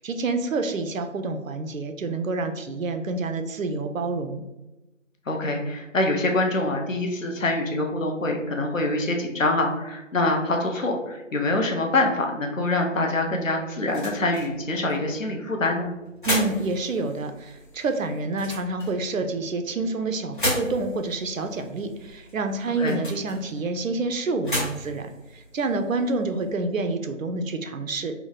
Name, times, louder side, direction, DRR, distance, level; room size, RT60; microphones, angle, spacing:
voice 1, 0.0-4.4 16.2-28.1, right 3 dB, 90° right, 7 dB, 0.6 m, -28 dB
voice 2, 5.3-15.9 22.8-23.0, left 2 dB, 75° left, 2 dB, 0.9 m, -25 dB
sound 1, 13.0-26.5, left 1 dB, 40° left, 1.0 m, -36 dB
3.4 x 2.1 x 3.7 m, 0.98 s
figure-of-eight pair, 180°, 39 cm